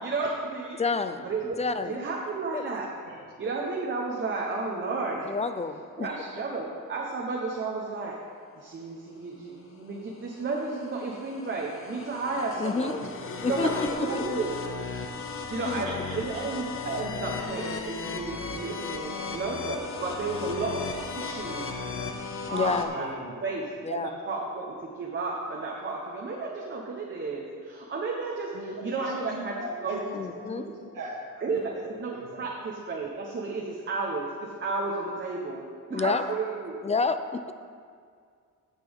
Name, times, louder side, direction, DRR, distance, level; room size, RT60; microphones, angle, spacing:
voice 1, 0.0-0.8 1.2-1.6 1.8-2.9 3.4-5.3 6.0-8.2 8.6-13.0 13.5-14.5 15.5-21.7 22.4-23.1 23.4-29.6 29.8-30.0 30.5-30.7 31.4-35.6 35.9-36.7, right 3 dB, 35° right, -2 dB, 0.9 m, -32 dB
voice 2, 0.8-1.3 1.6-2.1 2.5-2.6 5.3-6.1 12.6-13.0 13.4-14.4 15.6-16.0 22.5-22.9 23.8-24.1 30.1-30.7 35.9-36.2 36.8-37.5, left 4 dB, 20° left, 10 dB, 0.3 m, -29 dB
sound 1, 9.8-22.9, left 4 dB, 40° left, 0.8 m, -36 dB
voice 3, 13.9-14.4 15.8-16.4 22.9-23.4 28.5-30.0 30.3-30.4 30.7-31.6 32.1-32.5, right 2 dB, 80° right, -4 dB, 2.0 m, -39 dB
15.5 x 5.9 x 3.5 m, 2.1 s
wide cardioid pair, 140°, 32 cm